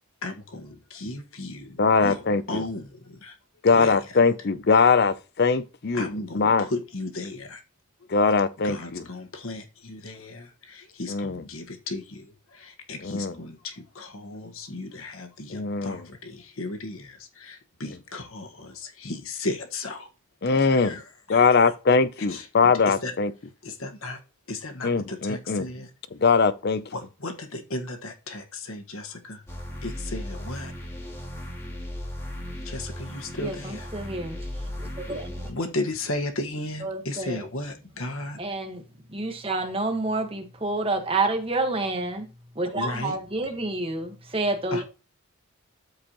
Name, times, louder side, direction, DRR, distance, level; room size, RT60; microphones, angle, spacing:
voice 1, 0.2-2.2 2.5-3.4 3.7-4.3 5.9-7.6 8.0-8.1 8.6-20.1 20.5-21.5 22.3-22.5 22.9-23.1 23.6-24.2 24.5-25.9 26.9-29.4 29.8-30.7 32.6-34.0 35.0-35.1 35.4-38.4 42.7-43.2 44.7-44.8, left 2 dB, 75° left, 1.5 m, -35 dB
voice 2, 1.8-2.6 3.6-6.1 6.3-6.7 8.1-9.0 11.1-11.4 13.0-13.3 15.5-16.0 20.4-21.0 21.3-23.3 24.8-25.7 26.2-26.8, left 4 dB, 45° left, 0.5 m, -21 dB
sound 1, 29.5-35.5, left 1 dB, 10° left, 2.0 m, -36 dB
voice 3, 33.4-35.5 36.8-37.4 38.4-38.8 39.1-42.3 42.5-44.8, right 2 dB, 25° right, 1.4 m, -29 dB
13.0 x 4.7 x 3.0 m
head